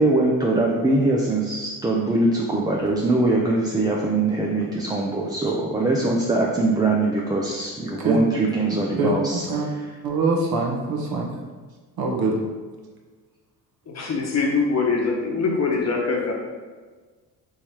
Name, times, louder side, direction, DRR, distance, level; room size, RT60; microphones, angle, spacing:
voice 1, 0.0-10.0, right 2 dB, 10° right, -3 dB, 0.4 m, -22 dB
voice 2, 10.0-11.3 12.0-12.3, right 3 dB, 55° right, 0 dB, 1.1 m, -23 dB
voice 3, 13.9-16.3, left 4 dB, 40° left, 0 dB, 1.0 m, -23 dB
3.6 x 3.1 x 4.3 m, 1.4 s
cardioid pair, 85°, 42 cm